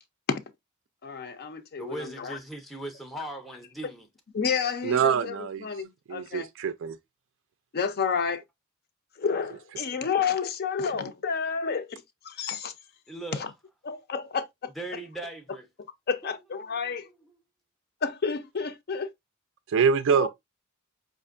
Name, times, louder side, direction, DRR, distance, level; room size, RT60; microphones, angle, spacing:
voice 1, 1.0-2.4 4.3-5.4 5.6-6.5 7.7-8.4 9.2-12.7 13.4-13.5 13.9-14.7 16.1-17.1 18.0-19.1 20.1-20.3, left 6 dB, 50° left, 0.5 m, -30 dB
voice 2, 1.8-4.1 13.1-13.5 14.7-15.7 16.7-17.1, right 1 dB, ahead, 0.5 m, -39 dB
voice 3, 4.8-5.7 6.1-7.0 19.7-20.3, right 6 dB, 60° right, 0.4 m, -24 dB
5.2 x 2.5 x 2.4 m
head